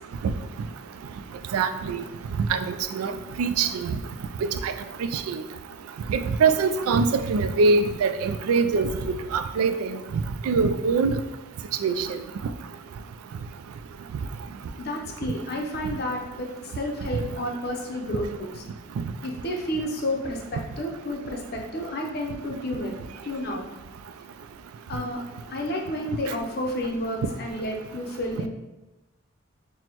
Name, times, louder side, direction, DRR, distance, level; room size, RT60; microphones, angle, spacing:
voice 1, 1.5-2.0 2.5-2.6 3.0-3.1 3.4-4.0 4.6-4.7 5.1-5.4 6.1-8.9 9.3-9.9 10.5-11.2 11.8-12.2, right 4 dB, 85° right, 9 dB, 0.3 m, -23 dB
voice 2, 14.8-18.6 19.2-22.9 23.2-23.6 24.9-25.2 25.5-28.5, left 1 dB, 45° left, 0 dB, 0.6 m, -31 dB
6.0 x 2.1 x 2.9 m, 1.0 s
head